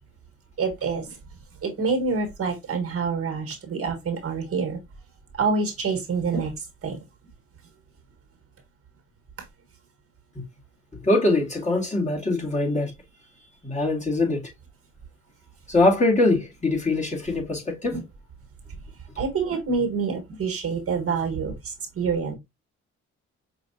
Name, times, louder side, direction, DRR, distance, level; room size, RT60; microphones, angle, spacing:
voice 1, 0.6-1.2 1.6-4.8 5.3-6.5 6.8-7.0 17.9-18.0 19.2-22.4, right 5 dB, 50° right, 1.5 m, -27 dB
voice 2, 10.9-12.9 13.6-14.5 15.7-18.0, left 2 dB, 25° left, 1.9 m, -23 dB
5.6 x 2.6 x 2.7 m
cardioid pair, 90°, 30 cm